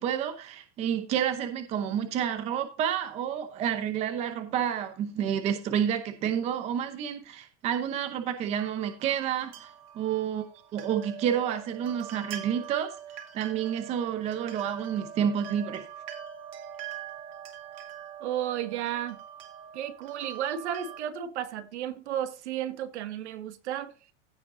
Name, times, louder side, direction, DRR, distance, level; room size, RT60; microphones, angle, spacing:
voice 1, 0.0-9.7 9.9-10.5 10.7-12.9 13.3-15.9, right 9 dB, 20° right, 0.8 m, -29 dB
sound 1, 8.6-21.0, right 9 dB, 60° right, 2.3 m, -43 dB
voice 2, 18.2-19.2 19.7-23.9, right 10 dB, 75° right, 1.7 m, -33 dB
15.5 x 5.2 x 3.9 m
supercardioid pair, 175°, 34 cm